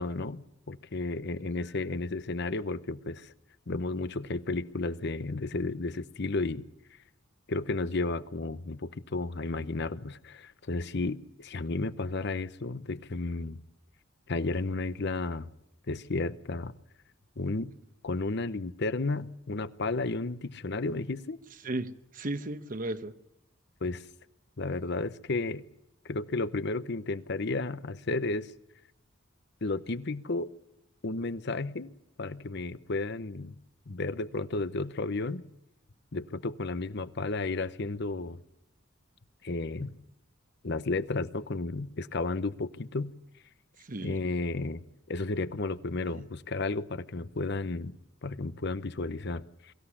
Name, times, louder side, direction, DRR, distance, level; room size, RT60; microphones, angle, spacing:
voice 1, 0.0-3.3 3.7-6.7 7.5-13.6 14.3-15.5 15.9-16.7 17.4-17.7 18.0-21.4 23.8-24.1 24.6-25.6 26.0-28.5 29.6-30.5 31.0-31.9 32.2-33.6 33.9-35.4 36.1-38.4 39.4-40.0 40.6-43.1 44.0-48.0 48.2-49.7, left 3 dB, 60° left, 0.9 m, -33 dB
voice 2, 21.6-23.1 43.8-44.2 46.1-46.2, right 2 dB, 45° right, 1.1 m, -35 dB
23.0 x 15.0 x 9.9 m
head